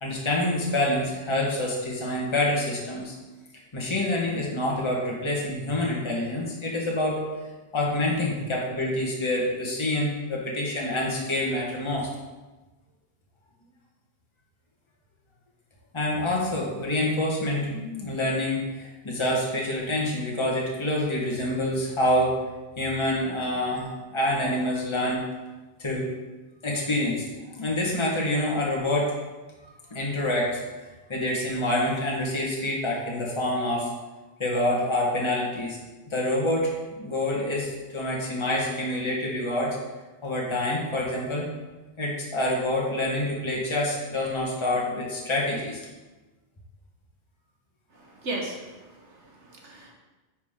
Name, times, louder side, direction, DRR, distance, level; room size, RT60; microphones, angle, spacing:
voice 1, 0.0-3.1 3.7-7.2 7.7-12.1 15.9-22.4 22.8-25.3 25.8-26.1 26.6-29.1 29.9-30.6 31.1-33.9 34.4-35.8 36.1-36.7 37.0-39.8 40.2-41.5 42.0-45.8, left 1 dB, 25° left, -3 dB, 1.5 m, -27 dB
voice 2, 47.9-49.9, right 2 dB, 90° right, 0 dB, 1.8 m, -37 dB
9.4 x 6.1 x 3.7 m, 1.2 s
omnidirectional pair, 1.2 m